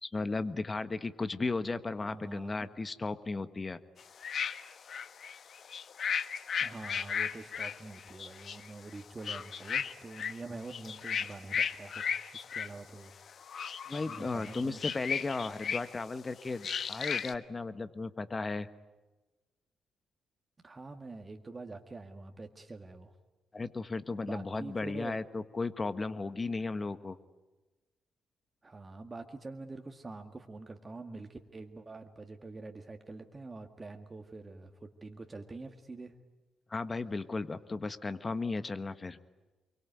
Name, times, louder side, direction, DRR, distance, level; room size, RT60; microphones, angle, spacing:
voice 1, 0.0-3.8 13.9-18.7 23.5-27.2 36.7-39.2, left 3 dB, 35° left, 11 dB, 1.5 m, -35 dB
voice 2, 2.1-2.7 6.6-13.1 14.1-14.8 20.6-23.1 24.2-25.2 28.6-36.1, right 3 dB, 30° right, 4 dB, 2.0 m, -46 dB
sound 1, 4.0-10.4 10.6-12.7 13.3-16.1 16.6-17.3, left 7 dB, 55° left, 1.2 m, -35 dB
26.5 x 23.5 x 9.4 m, 1.2 s
hypercardioid pair, 45°, 0 cm